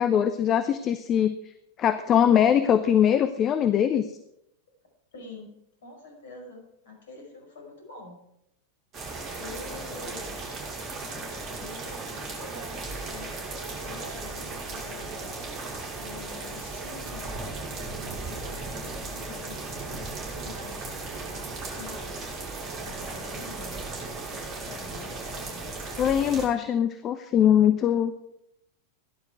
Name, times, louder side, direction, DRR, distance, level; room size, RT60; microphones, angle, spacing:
voice 1, 0.0-1.3 1.8-4.1 9.3-9.4 26.0-28.1, left 9 dB, 30° left, 11 dB, 0.9 m, -22 dB
voice 2, 5.1-5.5 5.8-8.2 9.4-10.4 11.6-13.5 13.8-15.3 16.0-17.3 17.9-20.9 21.3-22.2 22.8-23.8 24.6-25.7, left 2 dB, 60° left, 1 dB, 5.7 m, -46 dB
sound 1, 8.9-26.5, right 3 dB, 30° right, 5.6 m, -36 dB
16.5 x 11.5 x 4.8 m, 0.79 s
figure-of-eight pair, 90°, 0 cm